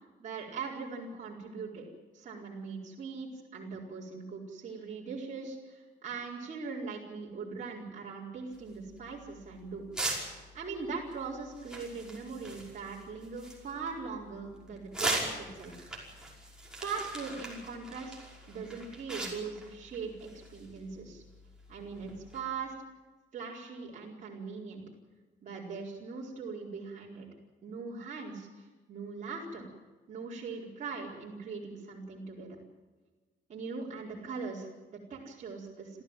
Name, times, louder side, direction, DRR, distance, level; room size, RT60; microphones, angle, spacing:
voice 1, 0.2-1.9 2.1-9.8 10.5-15.7 16.8-18.2 18.5-21.2 21.7-22.7 23.3-24.8 25.4-27.2 27.6-29.7 30.1-32.5 33.5-36.0, right 4 dB, 40° right, -4 dB, 4.6 m, -41 dB
sound 1, 8.5-22.4, right 2 dB, 5° right, 5.5 m, -41 dB
27.0 x 15.0 x 9.1 m, 1.3 s
cardioid pair, 150°, 19 cm